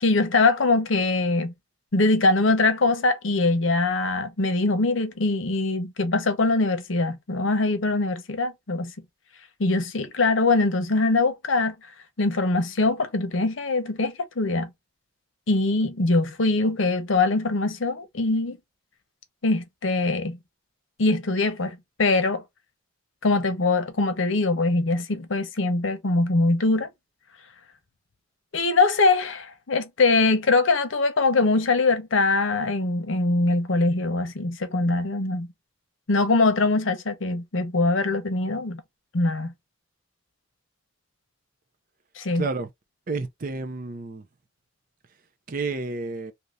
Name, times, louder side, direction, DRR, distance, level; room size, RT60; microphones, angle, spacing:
voice 1, 0.0-1.5 1.9-8.9 9.6-11.7 12.2-14.7 15.5-18.6 19.4-20.4 21.0-22.4 23.2-26.9 28.5-35.5 36.1-38.8 39.1-39.5 42.2-42.5, left 3 dB, 75° left, 0.8 m, -22 dB
voice 2, 42.3-42.7 43.1-44.2 45.5-46.3, right 3 dB, 45° right, 0.5 m, -30 dB
2.8 x 2.6 x 3.2 m
head